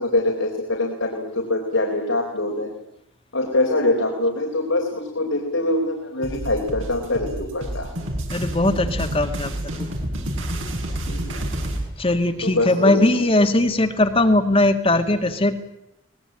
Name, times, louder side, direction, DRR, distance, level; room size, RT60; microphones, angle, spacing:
voice 1, 0.0-2.7 3.3-7.9 11.0-11.4 12.4-13.3, left 2 dB, 90° left, 1 dB, 4.1 m, -24 dB
sound 1, 6.2-11.8, right 1 dB, 80° right, 7.2 m, -28 dB
voice 2, 8.3-9.5 9.8-9.9 12.0-15.6, left 2 dB, 30° left, 7 dB, 1.8 m, -19 dB
24.5 x 20.0 x 8.9 m, 0.81 s
head